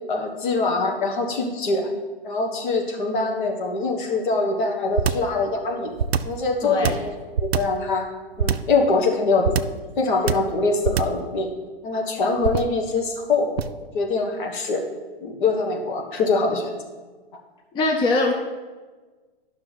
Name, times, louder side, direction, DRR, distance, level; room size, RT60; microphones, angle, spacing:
voice 1, 0.1-1.9 2.2-5.9 6.2-7.1 7.4-8.1 8.4-9.5 10.0-11.5 11.8-13.5 13.9-14.8 15.2-16.7, left 3 dB, 55° left, 2 dB, 1.5 m, -23 dB
sound 1, 5.0-5.3 6.0-6.4 6.8-7.8 8.4-8.8 9.4-9.8 10.3-10.6 10.8-11.3 12.4-12.8 13.6-13.9, right 7 dB, 80° right, 0.5 m, -23 dB
voice 2, 6.6-7.0 17.7-18.3, left 2 dB, 15° left, 1 dB, 0.7 m, -22 dB
10.0 x 5.9 x 4.0 m, 1.3 s
figure-of-eight pair, 115°, 30 cm